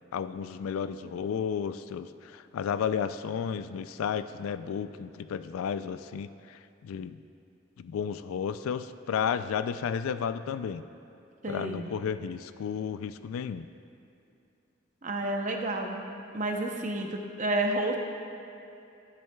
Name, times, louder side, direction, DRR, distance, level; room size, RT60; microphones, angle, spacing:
voice 1, 0.1-7.2 7.8-10.9 11.5-13.7, left 7 dB, 90° left, 12 dB, 0.3 m, -33 dB
voice 2, 11.4-11.9 15.0-16.0 16.3-18.0, right 1 dB, 35° right, 2 dB, 0.7 m, -30 dB
12.0 x 9.4 x 2.3 m, 2.7 s
head